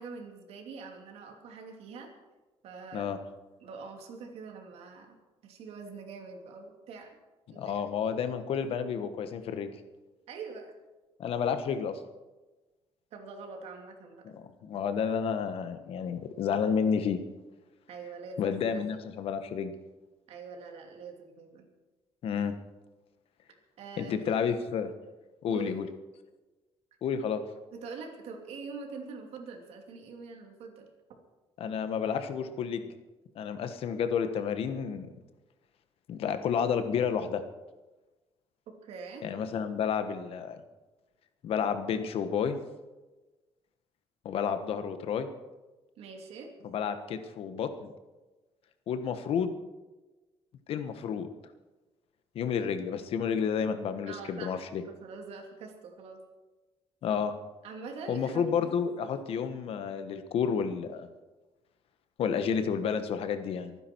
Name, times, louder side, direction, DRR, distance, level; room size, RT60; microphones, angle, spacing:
voice 1, 0.0-2.1 2.6-3.1 3.6-5.2 5.4-7.1 7.5-8.2 10.3-10.7 13.1-14.2 17.9-19.0 20.3-21.7 23.8-24.3 25.5-25.9 27.7-30.8 31.7-31.8 38.8-39.3 46.0-46.5 54.1-56.2 57.6-58.7, right 4 dB, 75° right, 2 dB, 2.9 m, -44 dB
voice 2, 7.5-9.8 11.2-12.0 14.3-17.2 18.4-19.7 22.2-22.5 24.0-24.9 25.4-25.9 27.0-27.4 31.6-32.8 33.3-35.1 36.1-37.4 39.2-40.6 41.4-42.6 44.2-45.3 46.6-47.9 48.9-49.5 50.7-51.3 52.3-54.8 57.0-57.3 58.1-61.1 62.2-63.8, left 7 dB, 65° left, 9 dB, 1.3 m, -30 dB
24.0 x 10.0 x 4.6 m, 1.2 s
cardioid pair, 125°, 11 cm